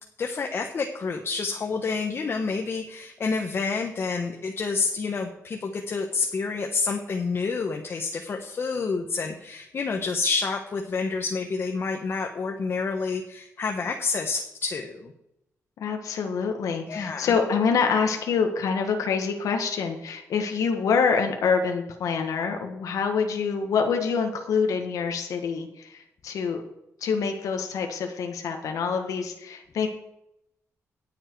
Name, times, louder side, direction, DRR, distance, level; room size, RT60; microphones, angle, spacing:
voice 1, 0.2-15.1 16.9-17.4, left 4 dB, 45° left, 3 dB, 1.1 m, -28 dB
voice 2, 15.8-26.6 27.0-29.9, left 5 dB, 80° left, 4 dB, 1.6 m, -26 dB
18.5 x 7.5 x 4.7 m, 0.83 s
cardioid pair, 120°, 6 cm